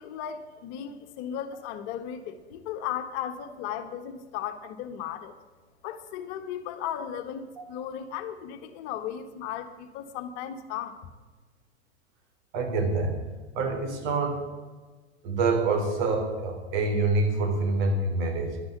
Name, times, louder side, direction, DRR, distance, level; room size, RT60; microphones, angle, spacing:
voice 1, 0.0-5.3 5.8-11.1, left 9 dB, 50° left, 8 dB, 1.6 m, -36 dB
voice 2, 12.5-13.2 13.5-14.4 15.2-18.6, right 3 dB, 55° right, 4 dB, 3.8 m, -26 dB
11.5 x 10.5 x 8.8 m, 1.4 s
hypercardioid pair, 90°, 34 cm